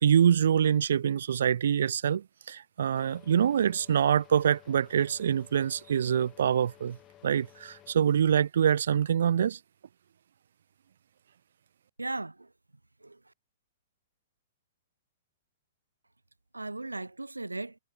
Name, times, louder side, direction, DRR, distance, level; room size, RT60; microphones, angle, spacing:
voice 1, 0.0-7.0 7.2-9.6, right 8 dB, 60° right, 0.9 m, -25 dB
sound 1, 2.9-7.9, left 14 dB, 25° left, 4.0 m, -56 dB
voice 2, 12.0-12.5 13.0-13.3 16.5-17.8, right 2 dB, 80° right, 0.6 m, -37 dB
figure-of-eight pair, 110°, 0 cm